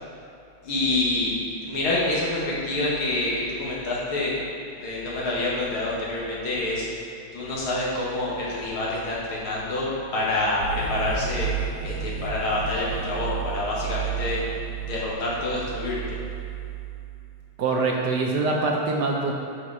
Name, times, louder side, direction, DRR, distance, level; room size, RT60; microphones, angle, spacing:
voice 1, 0.6-1.3 1.6-4.3 4.8-6.9 7.3-11.5 11.8-14.4 14.8-16.2, left 2 dB, 90° left, -6 dB, 2.6 m, -27 dB
sound 1, 10.6-17.4, right 7 dB, 85° right, 2.2 m, -32 dB
voice 2, 17.6-19.3, right 3 dB, 60° right, 0 dB, 1.3 m, -24 dB
11.0 x 4.7 x 4.8 m, 2.6 s
omnidirectional pair, 2.3 m